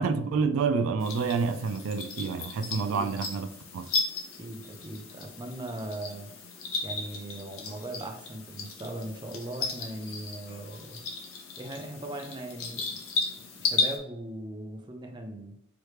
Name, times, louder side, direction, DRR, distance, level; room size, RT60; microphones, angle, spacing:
voice 1, 0.0-3.5 3.7-3.9, right 5 dB, 80° right, 0.3 m, -28 dB
sound 1, 1.0-14.0, left 4 dB, 75° left, 0.8 m, -35 dB
voice 2, 4.4-6.3 6.8-11.0 11.6-13.0 13.6-15.5, right 1 dB, 20° right, 0.5 m, -39 dB
sound 2, 7.7-8.1 10.5-11.0, equal, 45° left, 0.8 m, -54 dB
4.7 x 3.2 x 3.1 m
head